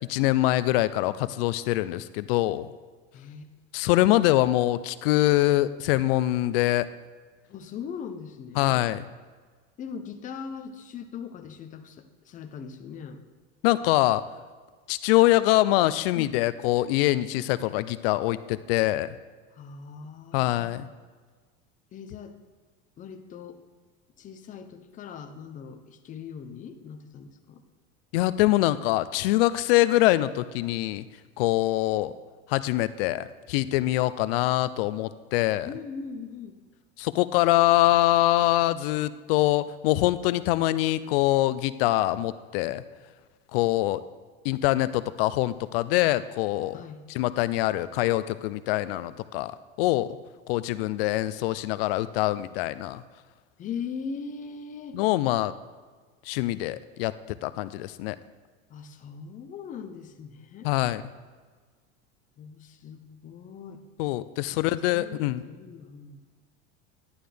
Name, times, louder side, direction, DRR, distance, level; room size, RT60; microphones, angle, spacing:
voice 1, 0.1-2.7 3.7-6.9 8.6-9.1 13.6-14.2 14.9-19.1 20.3-20.9 28.1-31.0 31.4-32.1 32.5-35.7 37.0-42.8 43.5-44.0 44.4-46.8 47.1-50.1 50.5-53.0 54.9-55.5 56.3-58.2 60.6-61.0 64.0-65.4, left 16 dB, 70° left, 15 dB, 0.5 m, -24 dB
voice 2, 3.1-3.5 7.5-8.8 9.8-13.2 16.1-16.4 19.5-20.8 21.9-22.4 23.0-23.6 24.2-27.6 35.6-36.6 46.7-47.0 53.6-55.0 58.7-60.7 62.4-63.8 64.5-66.2, left 6 dB, 25° left, 7 dB, 0.7 m, -40 dB
11.5 x 11.0 x 3.4 m, 1.5 s
supercardioid pair, 150°, 30 cm